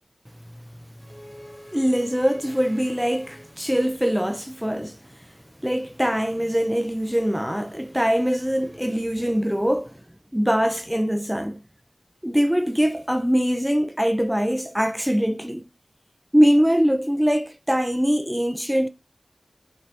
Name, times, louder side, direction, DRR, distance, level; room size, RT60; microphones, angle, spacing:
voice 1, 1.1-5.0 5.6-10.0 10.3-11.6 12.2-15.7 16.3-18.9, equal, 5° right, 0.4 m, -23 dB
5.0 x 2.7 x 3.2 m
wide cardioid pair, 70°, 0 cm